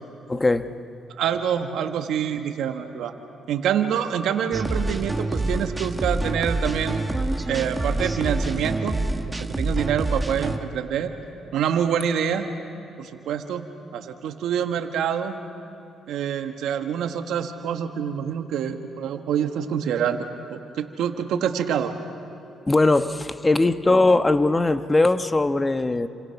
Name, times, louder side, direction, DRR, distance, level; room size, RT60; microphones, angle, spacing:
voice 1, 0.3-0.7 22.7-26.1, left 2 dB, 25° left, 10 dB, 1.2 m, -20 dB
voice 2, 1.2-3.1 3.5-7.0 7.5-8.9 9.3-11.1 11.5-12.5 13.0-13.6 13.9-15.4 16.1-21.9, right 8 dB, 80° right, 6 dB, 1.6 m, -26 dB
sound 1, 4.5-10.6, right 2 dB, 15° right, 1.6 m, -27 dB
29.0 x 27.0 x 5.9 m, 2.9 s
supercardioid pair, 65°, 0 cm